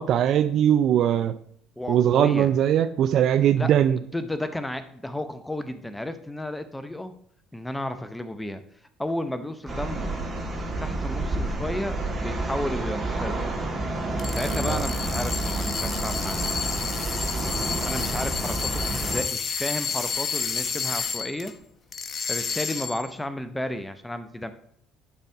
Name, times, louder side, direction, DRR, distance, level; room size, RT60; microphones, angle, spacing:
voice 1, 0.0-1.3 1.9-4.0 14.7-14.8, right 10 dB, 55° right, 11 dB, 0.4 m, -20 dB
voice 2, 1.8-2.5 3.6-3.7 4.1-7.1 7.5-8.6 9.0-10.1 10.8-13.5 14.3-16.4 17.8-21.5 22.3-24.5, left 1 dB, 10° left, 10 dB, 0.7 m, -32 dB
sound 1, 9.7-19.2, right 2 dB, 25° right, 2.0 m, -29 dB
sound 2, 14.1-21.5 21.9-23.1, left 5 dB, 40° left, 0.9 m, -30 dB
10.0 x 4.1 x 4.8 m, 0.64 s
hypercardioid pair, 60°, 0 cm